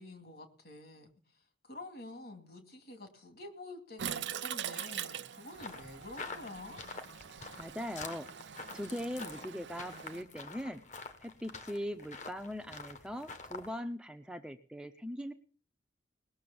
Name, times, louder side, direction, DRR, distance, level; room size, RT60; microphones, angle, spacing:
voice 1, 0.0-6.8, left 2 dB, 55° left, 6 dB, 2.5 m, -48 dB
Toilet flush, 4.0-10.2, right 9 dB, 75° right, 0.6 m, -43 dB
sound 1, 5.5-13.7, left 4 dB, 40° left, 1.2 m, -47 dB
voice 2, 7.6-8.3 8.7-10.8 11.2-15.3, equal, 5° right, 6 dB, 0.6 m, -40 dB
19.5 x 6.7 x 7.0 m, 0.43 s
head